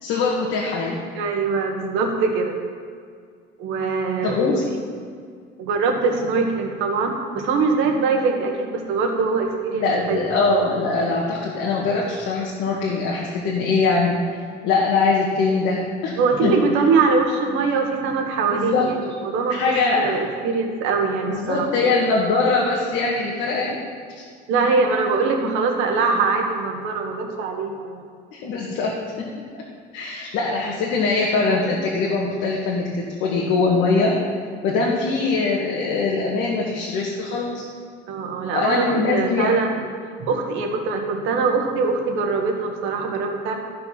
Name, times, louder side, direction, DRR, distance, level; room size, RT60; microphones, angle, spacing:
voice 1, 0.0-1.0 4.2-4.6 9.8-14.2 14.6-16.5 18.5-18.9 19.5-20.2 21.3-23.8 24.1-24.2 28.3-29.2 29.9-34.2 34.6-37.6 38.5-39.6, left 3 dB, 85° left, -3 dB, 1.6 m, -22 dB
voice 2, 1.1-2.6 3.6-4.6 5.6-10.3 16.2-19.0 19.2-19.6 19.9-21.7 24.5-28.0 38.1-39.8 40.2-43.6, right 4 dB, 90° right, 3 dB, 1.6 m, -22 dB
14.0 x 5.7 x 5.9 m, 2.1 s
cardioid pair, 150°, 20 cm